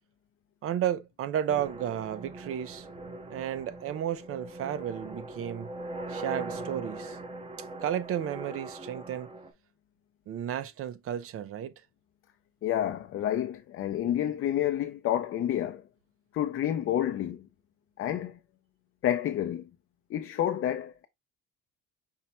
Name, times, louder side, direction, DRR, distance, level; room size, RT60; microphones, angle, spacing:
voice 1, 0.6-2.9 3.3-5.7 6.1-7.2 7.8-9.3 10.3-11.7, right 10 dB, 50° right, 0.6 m, -33 dB
sound 1, 1.5-9.5, right 2 dB, 20° right, 0.8 m, -41 dB
voice 2, 12.6-15.8 16.3-17.5 18.0-18.4 19.0-19.7 20.1-21.1, left 11 dB, 50° left, 0.5 m, -29 dB
5.4 x 2.2 x 4.2 m
cardioid pair, 125°, 29 cm